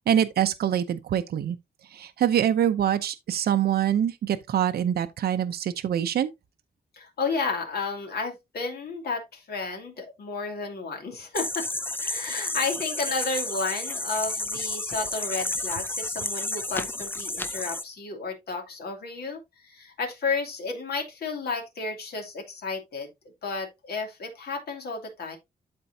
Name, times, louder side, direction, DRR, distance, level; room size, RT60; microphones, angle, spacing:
voice 1, 0.1-1.6 1.9-6.3, right 10 dB, 70° right, 0.6 m, -24 dB
voice 2, 6.9-11.7 12.0-23.1 23.4-25.4, left 4 dB, 70° left, 2.7 m, -32 dB
sound 1, 11.3-17.8, left 2 dB, 10° left, 0.5 m, -31 dB
12.0 x 4.4 x 2.7 m
wide cardioid pair, 175°, 17 cm